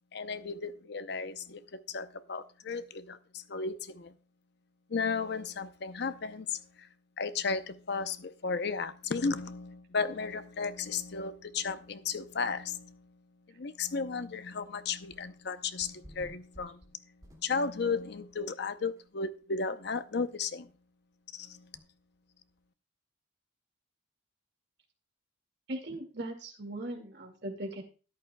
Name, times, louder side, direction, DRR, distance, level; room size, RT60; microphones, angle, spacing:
voice 1, 0.1-4.1 4.9-6.9 7.2-13.1 13.6-16.8 17.4-20.7 21.3-21.7, left 4 dB, 55° left, 0.7 m, -34 dB
sound 1, 15.1-15.4 15.8-17.9 18.3-18.4 19.0-19.1 19.3-19.4 19.8-19.9 21.7-21.9, equal, 20° right, 2.3 m, -53 dB
voice 2, 25.7-27.8, right 1 dB, 55° right, 2.1 m, -39 dB
13.5 x 11.0 x 2.2 m
head